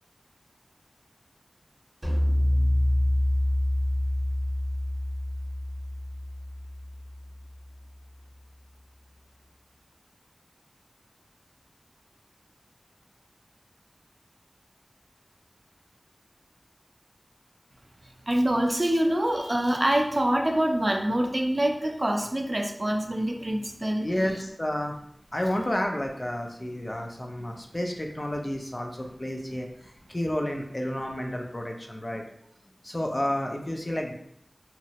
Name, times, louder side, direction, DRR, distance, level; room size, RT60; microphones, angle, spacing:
sound 1, 2.0-7.4, left 1 dB, 25° right, 0.8 m, -26 dB
voice 1, 18.3-24.1, right 1 dB, 45° right, 3 dB, 0.4 m, -25 dB
voice 2, 24.0-25.0 25.3-29.7 30.1-32.2 32.8-34.1, left 1 dB, 35° left, 2 dB, 0.4 m, -30 dB
2.9 x 2.0 x 2.7 m, 0.73 s
wide cardioid pair, 40°, 0 cm